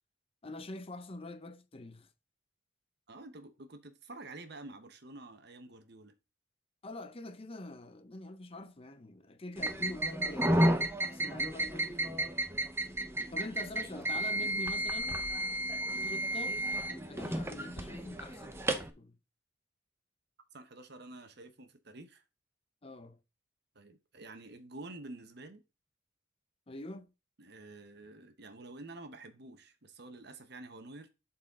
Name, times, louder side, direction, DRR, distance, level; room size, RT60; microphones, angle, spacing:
voice 1, 0.4-2.1 6.8-12.3 13.3-15.2 16.0-16.6 16.9-19.2 22.8-23.2 26.7-27.1, left 2 dB, 30° left, 0.6 m, -45 dB
voice 2, 3.1-6.1 20.5-22.2 23.7-25.6 27.4-31.1, right 2 dB, 55° right, 1.1 m, -49 dB
sound 1, 9.6-18.9, right 1 dB, 10° right, 0.7 m, -32 dB
11.5 x 4.3 x 3.7 m
head